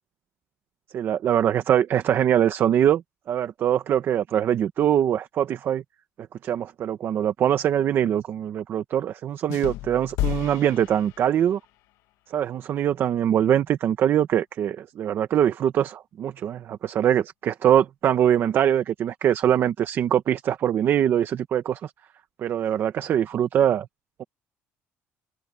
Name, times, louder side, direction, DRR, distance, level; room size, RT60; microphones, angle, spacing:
voice 1, 0.9-3.0 3.3-5.8 6.4-11.6 12.3-21.9 22.4-23.9 24.2-24.3, right 10 dB, 45° right, 1.2 m, -23 dB
sound 1, 9.5-11.7, left 16 dB, 90° left, 1.5 m, -32 dB
cardioid pair, 150°, 5 cm